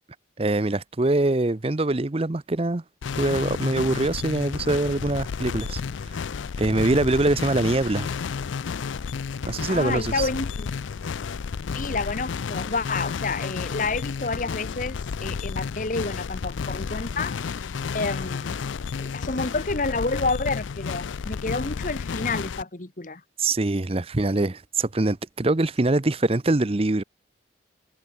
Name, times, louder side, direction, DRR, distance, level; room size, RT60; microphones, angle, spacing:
voice 1, 0.4-2.8 3.2-5.8 6.6-8.1 9.5-10.3 23.4-27.0, right 2 dB, 30° right, 0.7 m, -23 dB
sound 1, 3.0-22.6, left 5 dB, 80° left, 0.4 m, -31 dB
voice 2, 9.4-10.7 11.7-17.3 17.9-18.6 19.0-23.2, left 3 dB, 40° left, 1.3 m, -29 dB
head